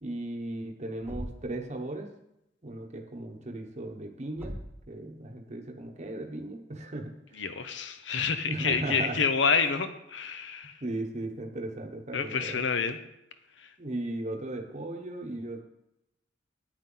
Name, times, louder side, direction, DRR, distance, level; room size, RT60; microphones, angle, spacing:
voice 1, 0.0-2.1 2.6-4.6 4.9-7.6 8.4-9.2 10.8-12.6 13.8-15.6, right 2 dB, 35° right, 2 dB, 1.0 m, -36 dB
Thump thud, 1.0-1.7 4.4-4.9, equal, 10° right, 0.7 m, -40 dB
voice 2, 7.4-10.7 12.1-13.0, left 5 dB, 70° left, 10 dB, 0.8 m, -28 dB
9.8 x 9.0 x 3.9 m, 0.85 s
head